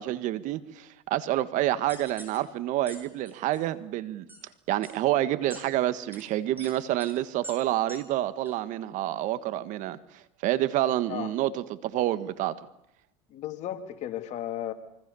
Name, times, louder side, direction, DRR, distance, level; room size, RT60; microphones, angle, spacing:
voice 1, 0.0-4.3 4.7-12.6, right 14 dB, 60° right, 1.6 m, -28 dB
sound 1, 1.9-2.4 2.9-3.0 3.3-3.6 4.3-4.4 4.8-4.9 5.5-5.6 6.1-6.2 6.6-6.7 7.0-7.1 7.4-7.5 7.9-8.0 8.5-8.6, right 2 dB, 15° right, 8.0 m, -43 dB
voice 2, 13.3-14.7, left 12 dB, 55° left, 3.1 m, -34 dB
26.5 x 24.5 x 7.1 m
supercardioid pair, 100°, 15 cm